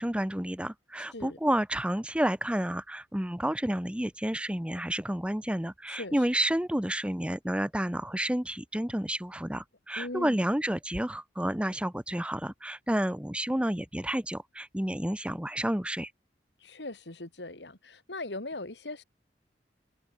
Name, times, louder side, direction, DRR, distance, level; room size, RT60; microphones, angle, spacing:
voice 1, 0.0-16.1, right 1 dB, 5° right, 1.0 m, -30 dB
voice 2, 10.0-10.4 16.6-19.0, left 2 dB, 80° left, 3.0 m, -39 dB
head